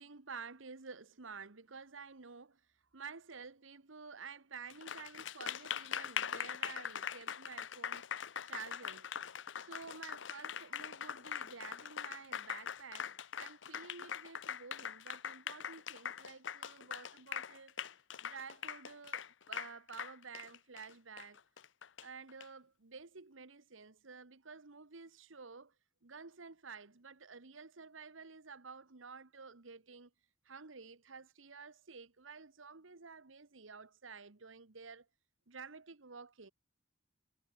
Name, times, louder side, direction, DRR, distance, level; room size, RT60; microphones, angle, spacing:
voice 1, 0.0-2.6 2.9-8.1 8.4-9.1 9.6-13.1 13.4-17.8 18.2-21.4 22.0-25.7 26.0-30.1 30.4-35.1 35.5-36.5, right 5 dB, 85° right, 1.4 m, -51 dB
Applause, 4.7-22.4, left 8 dB, 65° left, 0.8 m, -42 dB
head